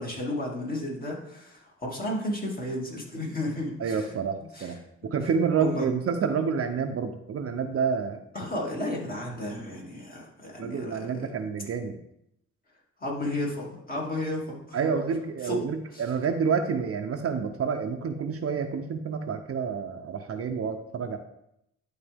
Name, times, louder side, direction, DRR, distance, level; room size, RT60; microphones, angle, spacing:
voice 1, 0.0-4.1 4.4-5.1 5.6-5.9 8.3-11.3 13.0-15.0 15.4-15.6 15.9-16.0, left 1 dB, 30° left, -3 dB, 2.5 m, -33 dB
voice 2, 3.8-4.8 5.0-8.2 10.6-12.0 14.7-21.2, right 6 dB, 50° right, 6 dB, 0.7 m, -28 dB
11.0 x 4.0 x 3.5 m, 0.78 s
cardioid pair, 90°, 30 cm